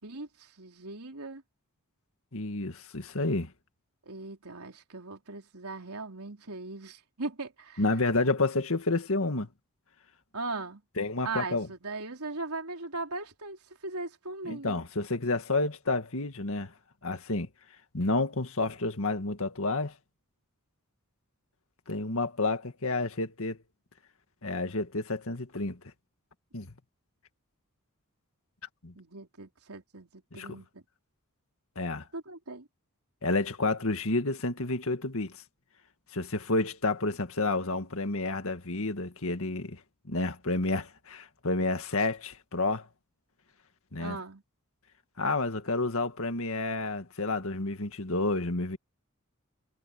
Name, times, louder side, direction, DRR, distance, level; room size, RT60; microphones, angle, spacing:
voice 1, 0.0-1.4 4.1-7.8 10.3-10.8 11.2-14.8 29.0-30.8 32.1-32.7 44.0-44.4, right 3 dB, 80° right, 3.8 m, -39 dB
voice 2, 2.3-3.5 7.8-9.5 11.0-11.7 14.5-16.7 17.0-17.5 17.9-19.9 21.9-23.6 24.4-25.8 26.5-26.7 28.8-28.9 30.3-30.5 31.8-32.1 33.2-35.4 36.1-39.8 40.1-42.9 43.9-44.2 45.2-48.8, left 2 dB, 65° left, 2.0 m, -30 dB
head